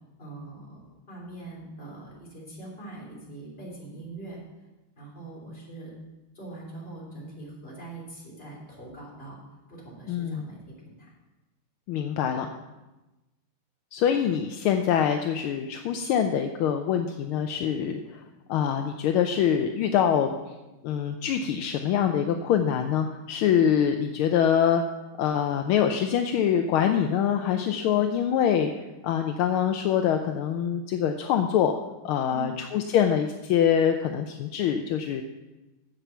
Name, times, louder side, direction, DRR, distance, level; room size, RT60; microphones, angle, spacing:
voice 1, 0.2-4.4 5.0-5.9 6.3-9.4 9.7-11.1 32.3-32.5, right 3 dB, 25° left, -4 dB, 3.7 m, -42 dB
voice 2, 10.1-10.5 11.9-12.5 13.9-18.2 18.5-20.3 20.8-24.8 25.2-28.7 29.0-31.7 32.0-35.2, left 8 dB, 80° left, 6 dB, 1.5 m, -24 dB
10.0 x 7.5 x 7.0 m, 1.1 s
omnidirectional pair, 2.4 m